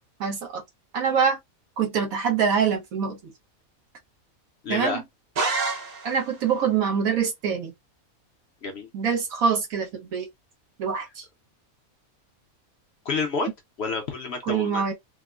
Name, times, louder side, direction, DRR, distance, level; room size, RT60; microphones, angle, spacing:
voice 1, 0.2-0.6 0.9-1.4 1.8-3.3 4.7-5.0 6.0-7.7 8.9-10.3 10.8-11.3 14.5-14.9, right 6 dB, 75° right, 1.3 m, -25 dB
voice 2, 4.6-5.0 8.6-8.9 13.0-13.5 13.8-14.8, left 4 dB, 55° left, 0.8 m, -29 dB
sound 1, 5.4-6.4, right 3 dB, 50° right, 0.8 m, -28 dB
3.5 x 2.0 x 2.3 m
omnidirectional pair, 1.5 m